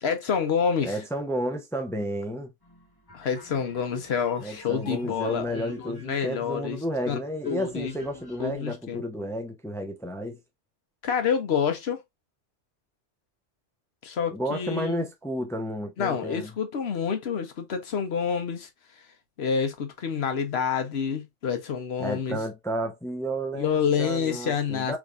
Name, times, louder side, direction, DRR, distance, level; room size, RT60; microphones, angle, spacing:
voice 1, 0.0-1.0 3.1-6.8 7.1-7.2 7.5-7.9 8.4-9.0 11.0-12.0 14.0-15.0 16.0-18.7 19.0-19.1 19.4-22.4 23.5-25.0, left 7 dB, 65° left, 1.1 m, -28 dB
voice 2, 0.8-2.5 4.4-10.4 14.3-16.5 22.0-25.0, equal, 5° left, 0.5 m, -32 dB
sound 1, 2.6-8.6, left 2 dB, 20° left, 1.2 m, -50 dB
3.5 x 3.0 x 2.4 m
omnidirectional pair, 1.2 m